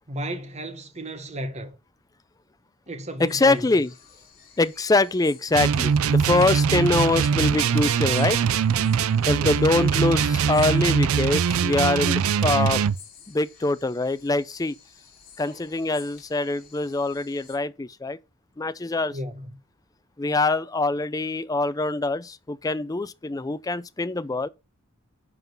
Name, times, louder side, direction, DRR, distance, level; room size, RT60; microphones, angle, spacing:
voice 1, 0.1-1.7 2.9-3.7 9.4-9.5 19.1-19.5, right 1 dB, 30° right, 1.1 m, -33 dB
voice 2, 3.2-3.9 4.6-8.4 9.3-12.8 13.3-14.7 15.4-18.2 18.6-19.1 20.2-24.5, left 2 dB, 15° left, 0.4 m, -24 dB
sound 1, 3.3-17.6, left 7 dB, 45° left, 2.6 m, -52 dB
sound 2, 5.5-13.0, right 7 dB, 85° right, 0.4 m, -22 dB
10.5 x 3.8 x 5.9 m
head